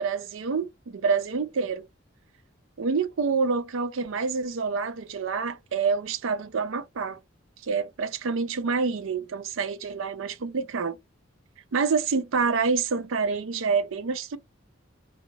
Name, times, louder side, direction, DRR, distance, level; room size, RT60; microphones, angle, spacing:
voice 1, 0.0-1.8 2.8-7.2 7.6-11.0 11.7-14.4, right 5 dB, 70° right, 0.5 m, -27 dB
2.4 x 2.3 x 3.1 m
head